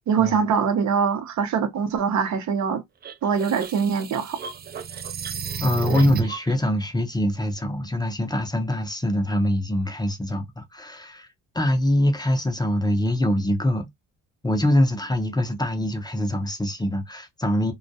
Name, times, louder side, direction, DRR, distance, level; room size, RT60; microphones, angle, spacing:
voice 1, 0.1-2.8 3.2-4.4, right 6 dB, 65° right, 0.7 m, -23 dB
sound 1, 3.0-6.5, right 7 dB, 35° right, 0.4 m, -31 dB
voice 2, 5.6-11.3 11.5-13.9 14.4-17.7, left 1 dB, 15° left, 0.6 m, -24 dB
2.3 x 2.1 x 2.6 m
cardioid pair, 90°, 30 cm